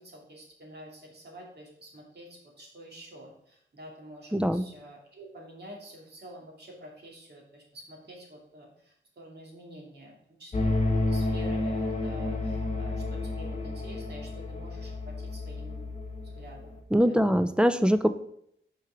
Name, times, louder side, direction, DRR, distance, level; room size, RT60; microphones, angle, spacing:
voice 1, 0.0-10.7 11.1-15.9 16.2-17.3, right 1 dB, 50° right, -1 dB, 2.2 m, -48 dB
voice 2, 4.3-4.6 16.9-18.1, equal, 5° right, 11 dB, 0.4 m, -22 dB
sound 1, 10.5-16.8, left 2 dB, 35° left, 1.2 m, -31 dB
6.2 x 4.7 x 4.9 m, 0.72 s
wide cardioid pair, 95°, 21 cm